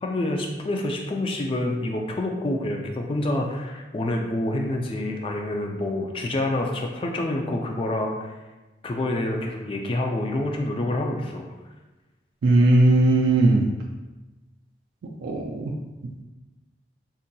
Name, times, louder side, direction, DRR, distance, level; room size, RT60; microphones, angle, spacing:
voice 1, 0.0-8.3 8.8-11.5, left 1 dB, 30° left, 2 dB, 0.3 m, -27 dB
voice 2, 12.4-13.6 15.2-15.7, right 2 dB, 85° right, -3 dB, 0.4 m, -18 dB
3.7 x 2.7 x 2.2 m, 1.1 s
head